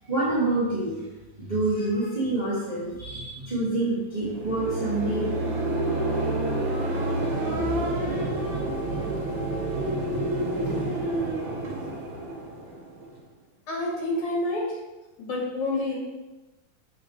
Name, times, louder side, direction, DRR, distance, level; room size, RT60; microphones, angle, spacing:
voice 1, 0.0-1.0 1.4-5.2, right 2 dB, 15° right, -10 dB, 2.5 m, -27 dB
sound 1, 4.2-13.2, right 1 dB, 45° right, 2.2 m, -28 dB
voice 2, 13.7-14.8 15.2-16.0, left 2 dB, 85° left, -4 dB, 3.6 m, -28 dB
8.1 x 7.2 x 3.4 m, 1.1 s
omnidirectional pair, 3.3 m